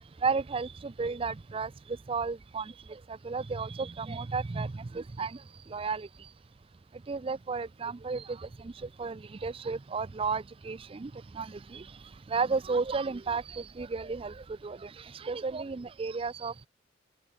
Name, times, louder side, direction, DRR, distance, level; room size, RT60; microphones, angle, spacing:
voice 1, 0.2-5.4 5.7-6.1 7.1-11.9 12.3-16.7, right 4 dB, 30° right, 0.4 m, -33 dB
open air
head